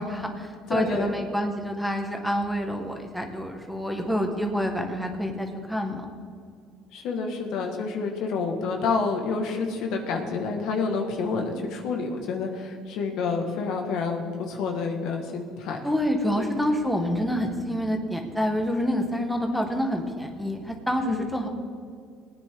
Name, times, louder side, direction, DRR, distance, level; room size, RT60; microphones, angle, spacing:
voice 1, 0.0-6.1 15.8-21.5, equal, ahead, 2 dB, 1.7 m, -27 dB
voice 2, 0.7-1.1 6.9-15.8 16.4-16.5 21.0-21.3, left 4 dB, 70° left, 3 dB, 1.8 m, -28 dB
19.0 x 9.6 x 3.9 m, 2.2 s
cardioid pair, 100°, 0 cm